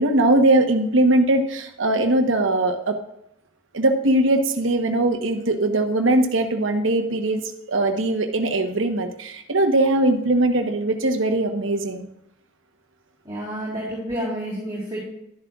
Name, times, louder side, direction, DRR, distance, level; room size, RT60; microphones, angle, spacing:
voice 1, 0.0-3.0 3.7-7.4 7.7-12.1, right 2 dB, 80° right, 5 dB, 1.1 m, -20 dB
voice 2, 13.3-15.0, equal, 15° right, -8 dB, 3.5 m, -29 dB
12.0 x 11.0 x 2.4 m, 0.81 s
head